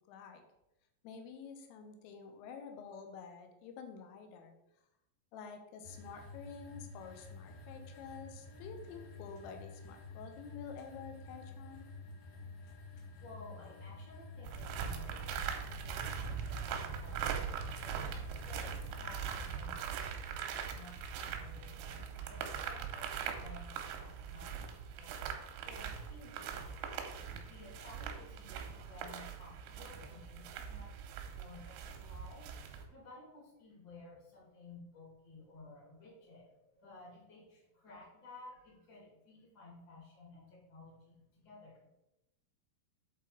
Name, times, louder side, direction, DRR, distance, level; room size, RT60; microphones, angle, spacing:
voice 1, 0.1-0.4 1.0-4.6 5.3-11.9, left 6 dB, 85° left, 5 dB, 3.4 m, -49 dB
sound 1, 5.8-19.5, left 3 dB, 65° left, 2.7 m, -50 dB
voice 2, 12.8-26.9 27.4-31.1 31.3-41.8, left 2 dB, 40° left, -5 dB, 1.3 m, -55 dB
sound 2, 14.4-32.8, right 7 dB, 80° right, 3.1 m, -41 dB
8.4 x 4.1 x 3.9 m, 0.92 s
omnidirectional pair, 5.7 m